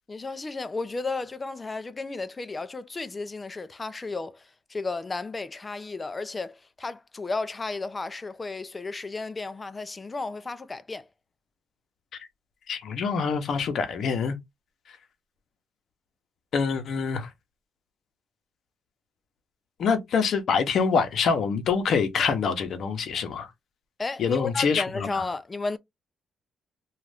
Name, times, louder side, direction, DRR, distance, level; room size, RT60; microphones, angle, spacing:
voice 1, 0.1-11.1 24.0-25.8, left 3 dB, 25° left, 0.4 m, -33 dB
voice 2, 12.7-14.4 16.5-17.3 19.8-23.5 24.2-25.2, left 5 dB, 65° left, 0.7 m, -25 dB
2.5 x 2.4 x 3.3 m
cardioid pair, 90°, 0 cm